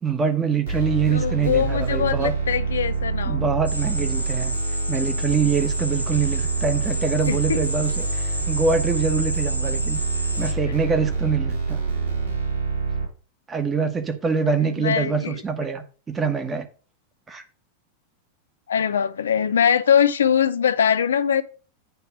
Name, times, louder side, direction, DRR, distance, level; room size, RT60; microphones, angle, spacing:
voice 1, 0.0-2.3 3.2-4.6 4.9-10.0 10.4-11.8 13.5-16.7 17.3-17.4, right 5 dB, 20° right, 1.2 m, -24 dB
sound 1, 0.7-13.1, right 4 dB, 70° right, 3.5 m, -26 dB
voice 2, 1.1-3.5 7.3-7.6 14.6-15.4 18.7-21.4, left 8 dB, 65° left, 0.5 m, -22 dB
sound 2, 3.7-10.5, equal, 90° right, 0.7 m, -32 dB
9.3 x 3.3 x 6.1 m
figure-of-eight pair, 90°, 0 cm